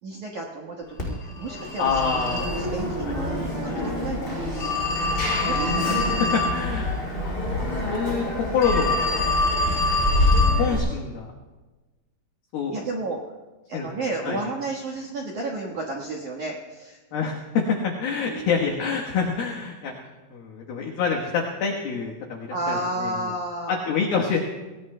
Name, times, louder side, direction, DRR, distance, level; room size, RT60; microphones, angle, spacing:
voice 1, 0.0-2.0 2.5-4.5 5.4-6.4 12.7-13.2 13.7-17.0 18.2-18.8 22.5-23.8, right 2 dB, 75° right, -1 dB, 1.8 m, -32 dB
Telephone, 1.0-10.8, left 2 dB, 10° left, 5.4 m, -24 dB
voice 2, 1.8-2.5 3.1-3.2 5.8-6.0 6.3-9.0 10.6-11.3 12.5-12.7 13.7-13.9 14.2-14.4 17.1-19.9 20.3-23.3 23.7-24.4, left 5 dB, 70° left, -1 dB, 2.4 m, -27 dB
27.0 x 20.0 x 2.2 m, 1.2 s
omnidirectional pair, 5.8 m